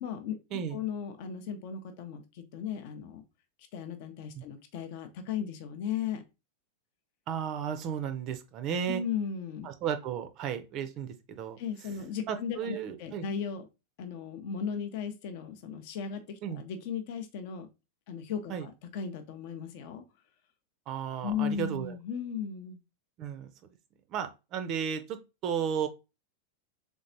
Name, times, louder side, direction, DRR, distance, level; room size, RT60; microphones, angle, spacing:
voice 1, 0.0-3.2 3.7-6.2 8.9-9.7 11.6-13.7 14.0-17.7 18.1-20.0 21.2-22.8, left 7 dB, 50° left, 0.5 m, -36 dB
voice 2, 7.3-9.0 9.6-11.6 12.3-13.2 16.4-16.6 18.5-18.7 20.9-21.9 23.2-23.5 24.1-25.9, right 8 dB, 35° right, 0.4 m, -34 dB
3.9 x 3.5 x 2.6 m
figure-of-eight pair, 90°, 0 cm